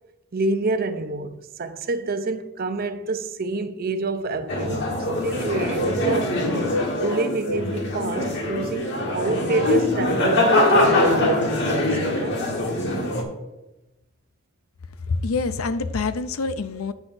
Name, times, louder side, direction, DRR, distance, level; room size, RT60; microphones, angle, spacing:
voice 1, 0.3-6.4 7.0-12.4, right 3 dB, 45° right, 0.6 m, -28 dB
sound 1, 4.5-13.2, left 1 dB, 55° left, 1.5 m, -23 dB
voice 2, 15.1-16.9, left 4 dB, 85° left, 0.6 m, -26 dB
9.6 x 8.0 x 2.6 m
head